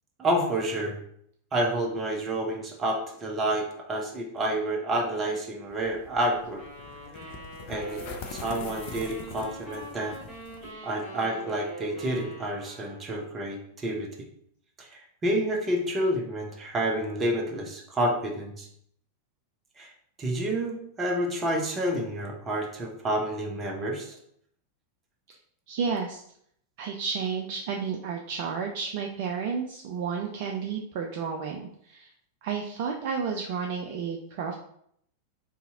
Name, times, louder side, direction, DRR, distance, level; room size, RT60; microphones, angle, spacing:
voice 1, 0.2-1.0 1.5-6.6 7.2-7.3 7.7-8.0 8.3-10.2 10.8-14.1 14.8-18.7 19.8-19.9 20.2-24.2, right 1 dB, 20° right, 1 dB, 0.8 m, -29 dB
sound 1, 5.7-10.7, left 5 dB, 45° left, 0.4 m, -43 dB
sound 2, 6.6-13.5, right 1 dB, 25° left, 1.2 m, -43 dB
voice 2, 25.7-26.2 26.8-32.1 32.4-34.6, right 6 dB, 50° right, 2 dB, 0.3 m, -32 dB
2.8 x 2.7 x 3.6 m, 0.69 s
figure-of-eight pair, 90°, 0 cm